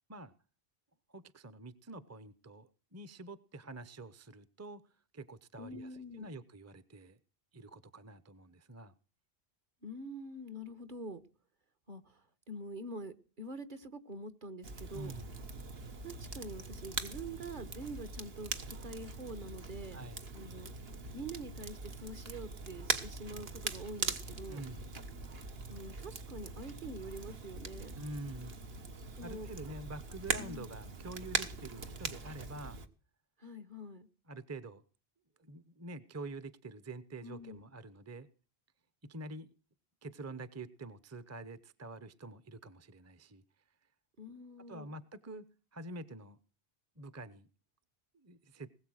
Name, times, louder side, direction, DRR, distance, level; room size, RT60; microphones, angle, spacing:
voice 1, 1.1-4.8 5.1-7.2 7.5-8.9 14.9-15.3 19.9-20.2 24.5-24.9 28.0-28.7 29.2-32.8 34.3-34.8 35.4-38.3 39.0-39.5 40.0-43.4 44.7-45.5 45.7-46.4 47.0-47.5 48.1-48.7, right 2 dB, 20° right, 15 dB, 0.7 m, -47 dB
voice 2, 5.6-6.3 9.8-11.2 11.9-15.1 16.0-20.0 20.3-20.7 21.1-24.6 25.7-28.0 29.1-29.5 30.3-30.7 33.4-34.1 37.2-37.6 44.2-44.9, right 1 dB, 50° right, 11 dB, 1.5 m, -45 dB
Crackle, 14.6-32.9, right 4 dB, 70° right, 1.6 m, -41 dB
20.0 x 8.0 x 6.3 m, 0.38 s
omnidirectional pair, 1.0 m